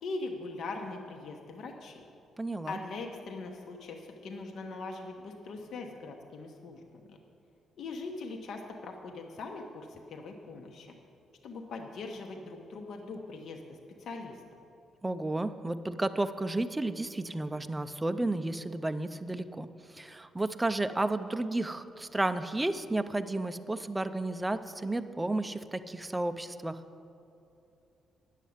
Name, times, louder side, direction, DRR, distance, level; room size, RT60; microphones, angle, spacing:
voice 1, 0.0-2.0 2.7-6.8 7.1-7.2 7.8-10.9 11.4-14.4, left 3 dB, 65° left, 2 dB, 1.0 m, -41 dB
voice 2, 2.4-2.8 15.0-26.8, right 2 dB, 10° right, 10 dB, 0.4 m, -32 dB
9.8 x 7.4 x 9.4 m, 2.8 s
cardioid pair, 135°, 0 cm